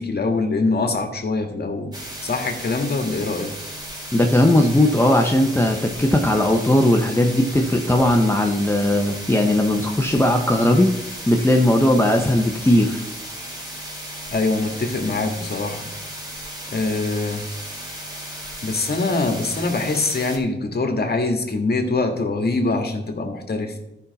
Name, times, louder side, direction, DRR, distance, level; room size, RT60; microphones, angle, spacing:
voice 1, 0.0-1.9 2.2-3.5 14.3-15.9 16.7-17.5 18.6-23.8, left 3 dB, 50° left, 4 dB, 1.7 m, -23 dB
sound 1, 1.9-20.4, equal, 20° right, 2.8 m, -35 dB
voice 2, 4.1-10.9 11.3-13.0, left 1 dB, 10° left, 2 dB, 0.9 m, -18 dB
13.5 x 5.6 x 4.1 m, 0.91 s
cardioid pair, 80°, 21 cm